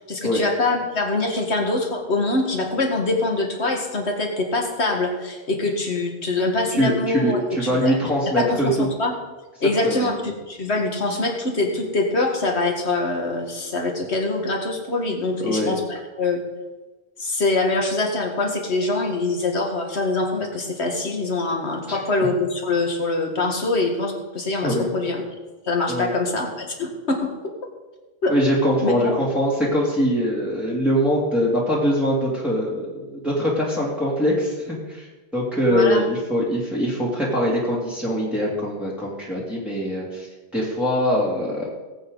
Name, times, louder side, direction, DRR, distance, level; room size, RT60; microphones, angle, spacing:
voice 1, 0.0-7.9 8.4-9.1 9.6-16.4 17.2-25.2 25.6-27.3 28.2-28.3 28.8-29.2 35.7-36.1, left 2 dB, 85° left, 2 dB, 2.2 m, -24 dB
voice 2, 6.8-8.9 9.8-10.1 15.4-15.7 21.9-22.0 24.6-24.9 25.9-26.1 28.3-35.1 35.3-40.3 40.5-41.7, equal, ahead, -6 dB, 2.9 m, -22 dB
19.0 x 8.6 x 4.0 m, 1.2 s
omnidirectional pair, 1.1 m